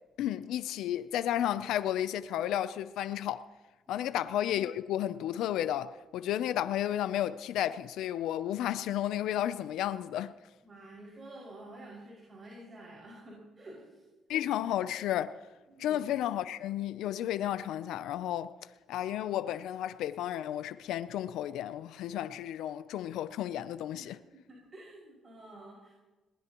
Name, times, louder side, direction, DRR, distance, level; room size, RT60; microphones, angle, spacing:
voice 1, 0.2-3.5 3.9-10.3 14.3-15.4 15.8-18.5 18.9-24.2, left 11 dB, 85° left, 0.5 m, -32 dB
voice 2, 10.6-14.1 15.7-16.0 23.9-25.9, right 1 dB, 40° right, 5.9 m, -50 dB
21.0 x 19.5 x 3.0 m
cardioid pair, 90°, 0 cm